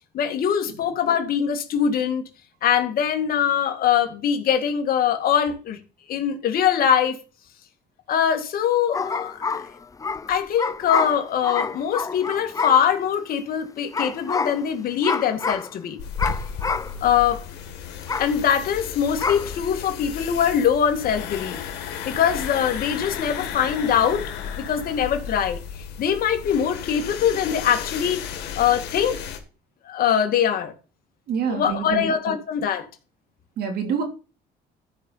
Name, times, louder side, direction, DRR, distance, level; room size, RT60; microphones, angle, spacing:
voice 1, 0.1-2.2 2.6-5.8 6.1-7.2 8.1-9.4 10.3-16.0 17.0-17.4 18.2-21.6 22.1-24.2 24.6-25.6 26.0-28.3 28.6-29.2 29.8-30.7 31.5-32.9, left 8 dB, 60° left, 2.1 m, -22 dB
sound 1, 8.9-13.1 13.9-14.7 15.0-15.8 16.2-17.0 17.3-17.4 18.0-18.3 19.2-19.5, left 4 dB, 20° left, 0.6 m, -28 dB
sound 2, 16.0-29.4, left 7 dB, 90° left, 2.1 m, -34 dB
voice 2, 31.3-32.3 33.6-34.0, right 7 dB, 70° right, 3.0 m, -27 dB
14.0 x 5.4 x 5.7 m
cardioid pair, 110°, 17 cm